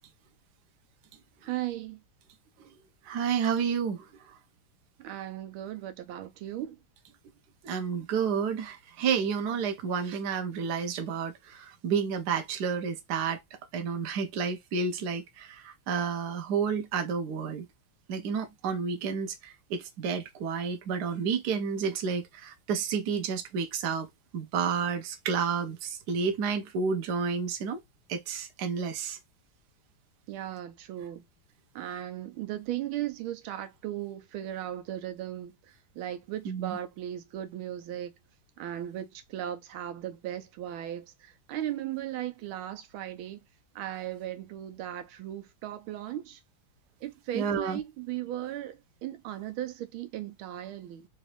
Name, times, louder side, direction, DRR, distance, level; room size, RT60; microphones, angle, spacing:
voice 1, 1.4-2.0 5.0-6.8 30.3-31.2 31.7-35.5 36.0-38.1 38.6-43.4 43.7-46.4 47.0-51.1, right 12 dB, 85° right, 1.5 m, -37 dB
voice 2, 3.1-4.0 7.6-13.4 13.7-17.7 18.1-27.8 28.1-29.2 36.4-36.8 47.3-47.8, right 6 dB, 60° right, 1.2 m, -30 dB
4.1 x 2.6 x 3.1 m
omnidirectional pair, 2.2 m